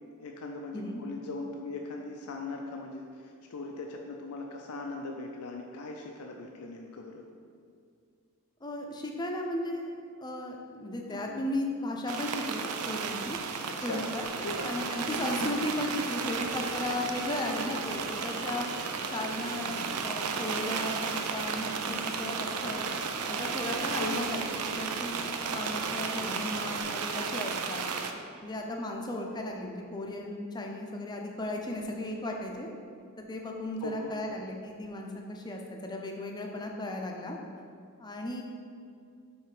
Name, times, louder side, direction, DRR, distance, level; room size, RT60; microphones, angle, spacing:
voice 1, 0.2-7.2 11.1-11.4 13.7-14.1 14.4-14.7 15.4-15.5 16.8-17.1 19.6-20.0 24.0-24.2 33.8-34.1, left 3 dB, 85° left, 1 dB, 0.5 m, -40 dB
voice 2, 8.6-9.9 10.2-13.4 13.8-18.7 19.1-22.8 23.3-24.5 24.8-27.9 28.4-32.7 33.3-37.4 38.0-38.4, left 1 dB, 20° left, 1 dB, 0.5 m, -35 dB
sound 1, 12.1-28.1, right 5 dB, 90° right, 0.5 m, -34 dB
Ocean, 14.2-26.8, right 1 dB, 75° right, 1.2 m, -45 dB
5.7 x 4.2 x 4.8 m, 2.3 s
head